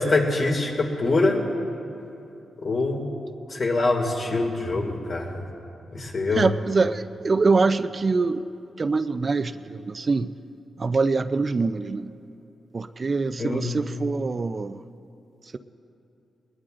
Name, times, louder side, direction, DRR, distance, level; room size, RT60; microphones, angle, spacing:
voice 1, 0.0-1.4 2.6-3.1 3.5-5.4 5.9-6.5 13.4-13.7, left 2 dB, 55° left, 0 dB, 2.4 m, -24 dB
voice 2, 6.3-8.4 8.8-10.3 10.8-12.1 12.7-14.8, right 4 dB, 40° right, 10 dB, 0.5 m, -24 dB
20.5 x 20.0 x 2.6 m, 2.8 s
cardioid pair, 70°, 0 cm